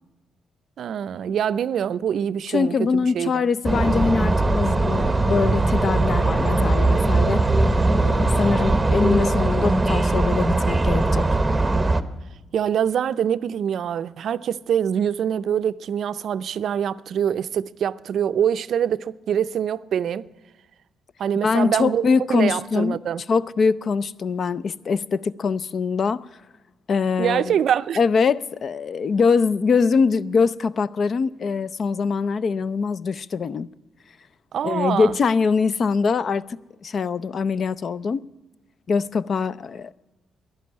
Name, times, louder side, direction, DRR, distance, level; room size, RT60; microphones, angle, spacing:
voice 1, 0.8-3.5 12.5-20.3 21.2-23.2 27.2-28.0 34.5-35.2, right 9 dB, 65° right, 0.4 m, -24 dB
voice 2, 2.5-7.4 8.0-11.3 21.4-23.0 23.3-26.2 26.9-27.6 28.0-33.7 34.6-36.4 36.8-38.2 38.9-39.9, left 5 dB, 50° left, 0.4 m, -23 dB
sound 1, 3.6-12.0, right 2 dB, 15° right, 0.8 m, -20 dB
11.5 x 11.0 x 9.5 m
cardioid pair, 90°, 0 cm